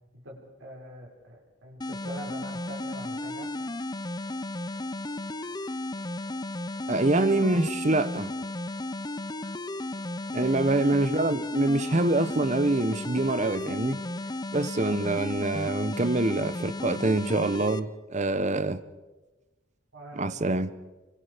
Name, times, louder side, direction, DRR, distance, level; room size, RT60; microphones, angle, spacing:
voice 1, 0.1-3.5 10.4-10.7 19.9-20.5, equal, 80° right, 6.1 m, -43 dB
sound 1, 1.8-17.8, left 1 dB, 20° left, 0.7 m, -34 dB
voice 2, 6.9-8.3 10.3-14.0 14.5-18.8 20.2-20.7, right 2 dB, 35° right, 1.0 m, -25 dB
29.0 x 25.0 x 5.1 m
head